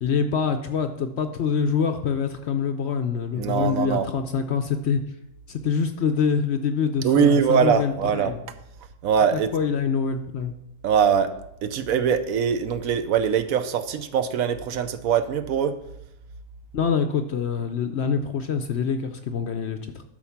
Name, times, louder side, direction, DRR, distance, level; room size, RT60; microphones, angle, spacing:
voice 1, 0.0-5.0 5.5-8.4 9.3-10.5 16.7-20.0, left 6 dB, 60° left, 7 dB, 0.8 m, -25 dB
voice 2, 3.4-4.1 7.0-8.3 9.0-9.5 10.8-11.3 11.6-15.8, right 7 dB, 70° right, 11 dB, 1.0 m, -22 dB
12.0 x 4.6 x 5.8 m, 0.82 s
omnidirectional pair, 1.6 m